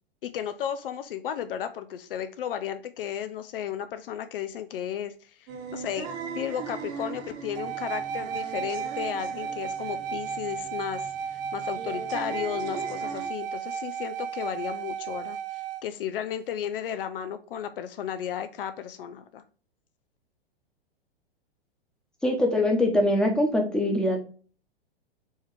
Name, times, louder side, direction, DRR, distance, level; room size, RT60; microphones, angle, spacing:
voice 1, 0.2-5.1 5.7-6.1 6.3-19.4, left 9 dB, 65° left, 10 dB, 0.5 m, -34 dB
sound 1, 5.5-13.3, right 6 dB, 35° right, 1.1 m, -40 dB
sound 2, 7.6-15.8, right 7 dB, 70° right, 0.5 m, -34 dB
voice 2, 22.2-24.2, left 1 dB, ahead, 1 dB, 1.0 m, -23 dB
4.6 x 2.8 x 3.3 m, 0.40 s
hypercardioid pair, 110°, 30 cm